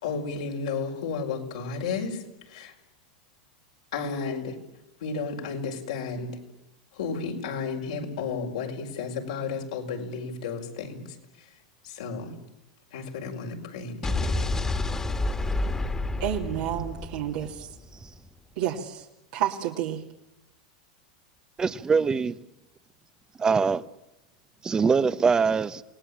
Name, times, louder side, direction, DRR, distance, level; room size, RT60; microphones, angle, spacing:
voice 1, 0.0-2.7 3.9-4.6 5.0-6.4 6.9-11.2 11.8-12.4 12.9-14.6, left 5 dB, 80° left, 5.3 m, -33 dB
Explosion, 14.0-18.1, left 2 dB, 15° left, 2.1 m, -29 dB
voice 2, 16.2-17.7 18.6-19.0 19.3-20.0, right 11 dB, 70° right, 2.6 m, -30 dB
voice 3, 21.6-22.4 23.4-23.9 24.6-25.8, right 5 dB, 20° right, 1.1 m, -23 dB
28.5 x 18.5 x 8.8 m
hypercardioid pair, 110°, 4 cm